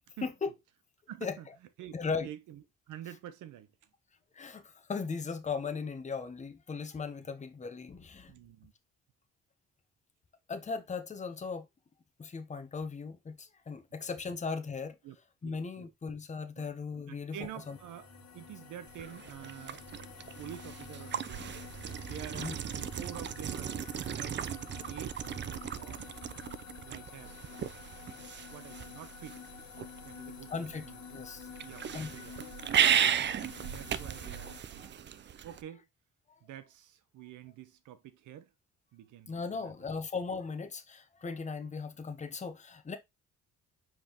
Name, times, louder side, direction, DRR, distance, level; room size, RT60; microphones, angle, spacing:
voice 1, 0.2-0.5 1.2-1.4 1.9-2.3 4.3-8.3 10.5-11.7 12.2-15.0 15.4-17.4 17.7-17.8 22.3-22.5 30.5-31.5 31.9-32.2 33.1-33.5 33.9-34.0 34.8-34.9 39.3-43.0, left 5 dB, 25° left, 0.8 m, -38 dB
voice 2, 1.1-1.5 1.8-1.9 2.2-3.7 8.3-8.7 13.9-14.0 15.0-15.2 15.4-15.9 16.6-16.7 17.1-18.1 18.3-20.1 20.4-21.6 22.0-23.7 24.1-25.2 25.7-26.1 26.8-27.3 28.5-29.4 30.0-31.2 31.6-31.8 32.1-32.3 33.1-35.9 36.4-38.5 38.9-39.9, right 11 dB, 85° right, 0.9 m, -48 dB
sound 1, 17.3-34.6, left 5 dB, 60° left, 1.4 m, -49 dB
sound 2, 18.9-35.6, right 9 dB, 40° right, 0.4 m, -35 dB
5.2 x 3.5 x 2.9 m
cardioid pair, 90°, 30 cm